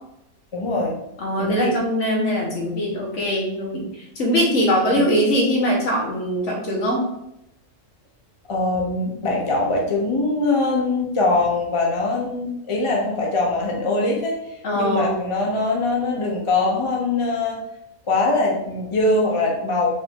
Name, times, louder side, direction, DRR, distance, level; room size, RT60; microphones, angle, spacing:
voice 1, 0.5-1.0 1.4-1.7 4.9-5.0 8.5-14.4 14.7-17.6 18.1-19.9, left 2 dB, 30° left, -2 dB, 0.6 m, -22 dB
voice 2, 1.2-7.0 14.6-15.1, equal, 60° left, -2 dB, 1.5 m, -22 dB
5.3 x 2.6 x 3.6 m, 0.84 s
omnidirectional pair, 1.4 m